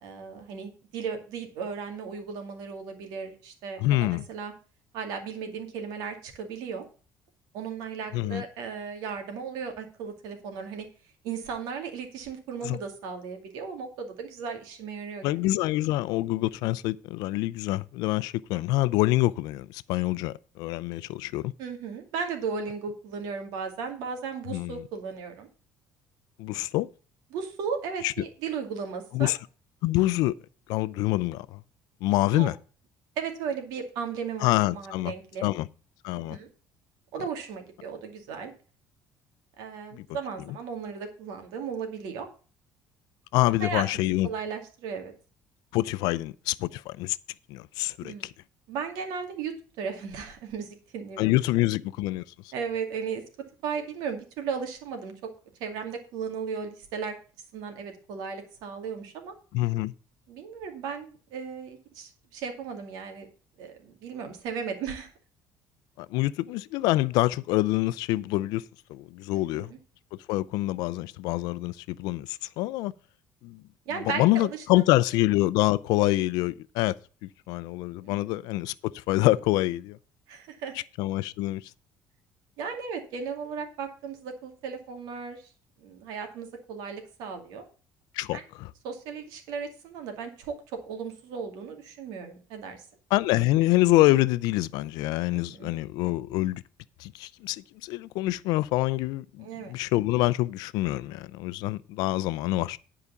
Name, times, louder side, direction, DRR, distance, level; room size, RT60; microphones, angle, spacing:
voice 1, 0.0-4.5 4.9-6.8 7.5-10.9 11.2-15.3 21.6-25.5 27.3-29.3 32.3-32.5 33.2-35.5 36.1-36.5 37.1-38.5 39.6-42.3 43.6-45.1 48.0-48.3 48.7-51.4 52.5-53.2 53.6-55.3 55.6-57.1 57.5-59.3 60.3-63.3 63.6-65.1 69.3-69.8 73.9-74.8 78.0-78.3 80.3-80.7 82.6-85.5 85.8-87.6 88.3-88.4 88.8-92.8 95.3-95.7 99.4-99.7, right 6 dB, 85° right, 2.4 m, -36 dB
voice 2, 3.8-4.2 8.1-8.4 12.6-12.8 15.2-21.5 24.5-24.7 26.4-26.9 28.0-28.1 29.1-29.4 29.8-30.3 30.7-31.6 32.0-32.6 34.4-35.1 35.4-35.7 36.0-36.4 39.9-40.1 43.3-44.3 45.7-47.2 47.5-48.1 51.2-52.2 59.5-59.9 66.0-68.6 68.9-69.7 70.3-72.9 73.4-73.6 74.0-77.0 77.5-80.0 81.0-81.6 88.1-88.7 93.1-96.6 97.0-102.8, left 17 dB, 85° left, 0.5 m, -26 dB
11.0 x 5.0 x 6.9 m
cardioid pair, 140°, 7 cm